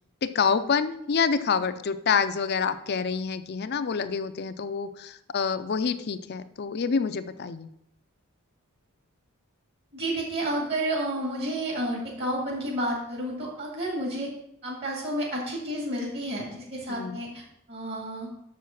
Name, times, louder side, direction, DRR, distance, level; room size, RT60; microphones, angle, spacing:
voice 1, 0.2-7.7 16.9-17.2, left 5 dB, 50° left, 12 dB, 0.5 m, -27 dB
voice 2, 9.9-14.3 14.6-18.3, right 1 dB, 50° right, -1 dB, 2.1 m, -31 dB
6.5 x 6.2 x 5.9 m, 0.77 s
head